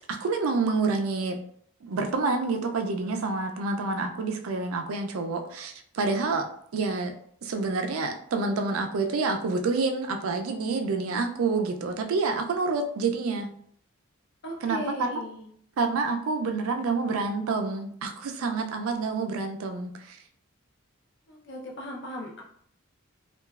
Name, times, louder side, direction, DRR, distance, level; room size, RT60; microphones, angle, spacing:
voice 1, 0.1-1.4 1.8-7.1 7.4-13.5 14.6-15.2 15.8-20.2, right 4 dB, 80° right, 5 dB, 0.4 m, -28 dB
voice 2, 14.4-15.5 21.3-22.4, equal, 55° left, 0 dB, 0.6 m, -37 dB
2.9 x 2.3 x 2.3 m, 0.64 s
head